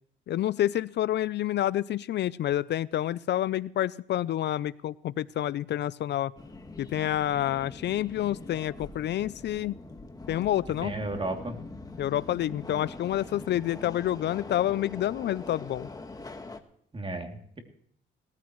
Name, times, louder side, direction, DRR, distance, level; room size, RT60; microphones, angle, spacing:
voice 1, 0.3-6.3 6.8-9.8 10.3-11.0 12.0-15.9, left 12 dB, 60° left, 19 dB, 0.5 m, -28 dB
Subway metro underground, 6.4-16.6, left 3 dB, 20° left, 1.6 m, -43 dB
voice 2, 10.8-11.6 16.9-17.6, right 2 dB, 25° right, 3 dB, 2.8 m, -34 dB
19.0 x 14.5 x 3.1 m, 0.64 s
cardioid pair, 90°, 20 cm